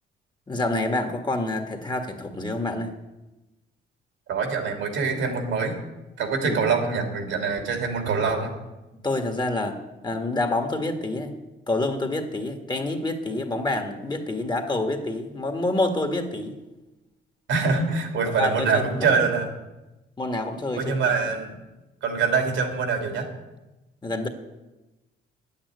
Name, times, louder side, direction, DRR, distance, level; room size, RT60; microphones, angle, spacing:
voice 1, 0.5-2.9 6.4-6.6 9.0-11.4 11.7-16.6 18.3-19.3 20.2-21.0 24.0-24.3, left 2 dB, 20° left, 5 dB, 1.8 m, -27 dB
voice 2, 4.3-5.8 6.2-8.5 17.5-19.5 20.8-21.6 22.0-23.3, right 5 dB, 80° right, 4 dB, 2.8 m, -24 dB
9.9 x 9.0 x 9.5 m, 1.1 s
cardioid pair, 90°, 20 cm